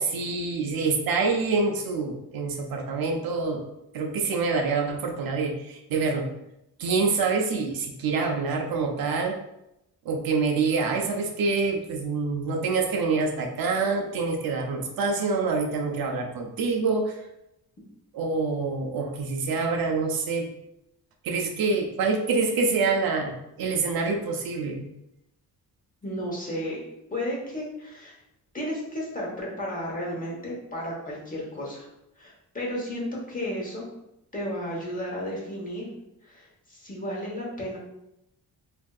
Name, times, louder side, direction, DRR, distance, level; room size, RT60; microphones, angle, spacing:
voice 1, 0.0-3.6 3.9-6.3 6.8-9.4 10.0-17.2 18.1-20.5 21.2-24.9, right 4 dB, 70° right, 2 dB, 0.6 m, -26 dB
voice 2, 26.0-26.8 27.1-28.2 28.5-31.9 32.2-33.8 34.3-35.9 36.2-37.8, equal, 20° left, -4 dB, 0.9 m, -33 dB
3.3 x 2.6 x 2.3 m, 0.84 s
cardioid pair, 135°, 37 cm